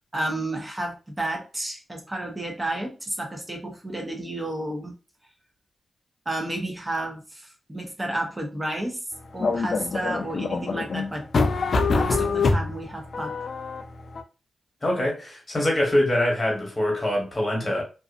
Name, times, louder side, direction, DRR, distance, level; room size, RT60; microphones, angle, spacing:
voice 1, 0.1-5.0 6.3-9.0 9.3-11.3 11.9-13.4, right 1 dB, 20° right, 0.8 m, -31 dB
sound 1, 9.4-14.2, left 4 dB, 60° left, 0.3 m, -25 dB
voice 2, 14.8-17.8, left 1 dB, 25° left, 1.3 m, -24 dB
2.5 x 2.4 x 2.5 m
cardioid pair, 85°, 0 cm